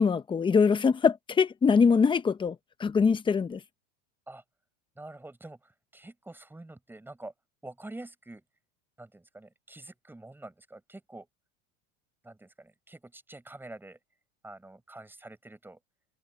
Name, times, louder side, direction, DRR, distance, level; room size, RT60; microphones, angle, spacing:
voice 1, 0.0-3.6, left 5 dB, 15° left, 0.7 m, -23 dB
voice 2, 5.0-7.3 7.6-8.4 9.0-11.3 12.2-14.0 14.4-15.8, right 2 dB, 5° right, 5.2 m, -46 dB
supercardioid pair, 155°, 38 cm